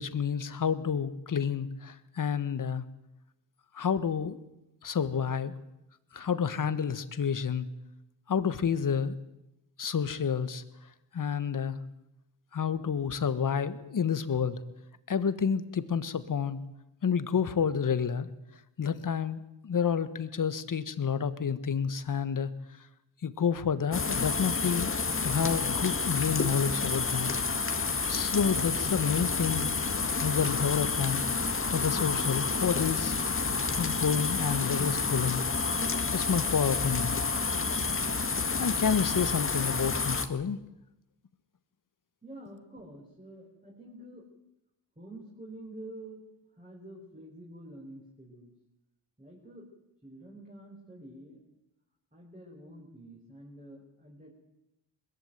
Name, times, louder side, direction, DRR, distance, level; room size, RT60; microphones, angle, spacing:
voice 1, 0.0-2.8 3.7-4.4 4.8-5.5 6.1-7.7 8.3-9.2 9.8-10.6 11.1-11.8 12.5-14.6 15.1-16.6 17.0-18.3 18.8-22.5 23.2-25.0 25.2-27.3 28.1-29.7 30.2-31.2 31.7-33.3 33.8-35.4 36.1-37.1 38.6-40.6, left 7 dB, 45° left, 13 dB, 1.6 m, -29 dB
sound 1, 23.9-40.3, left 4 dB, 30° left, 1.9 m, -29 dB
voice 2, 42.2-44.3 44.9-46.2 46.6-48.5 49.2-49.7 50.0-51.4 52.1-54.3, right 1 dB, 15° right, -2 dB, 5.3 m, -48 dB
21.5 x 14.5 x 9.2 m, 0.88 s
cardioid pair, 80°, 44 cm